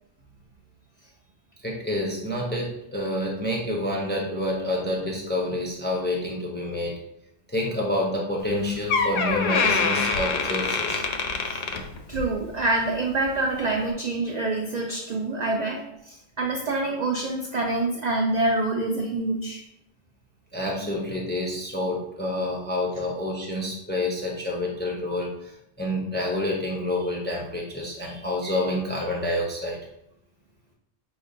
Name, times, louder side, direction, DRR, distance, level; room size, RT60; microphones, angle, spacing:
voice 1, 1.6-6.9 7.5-11.0 20.5-29.8, left 1 dB, 15° left, -2 dB, 0.5 m, -28 dB
Door, 8.4-8.5 8.9-12.4 12.7-13.0 13.7-13.8, left 4 dB, 70° left, 0.8 m, -25 dB
voice 2, 12.1-19.6, right 2 dB, 55° right, 1 dB, 0.4 m, -26 dB
5.1 x 2.2 x 3.8 m, 0.79 s
omnidirectional pair, 1.2 m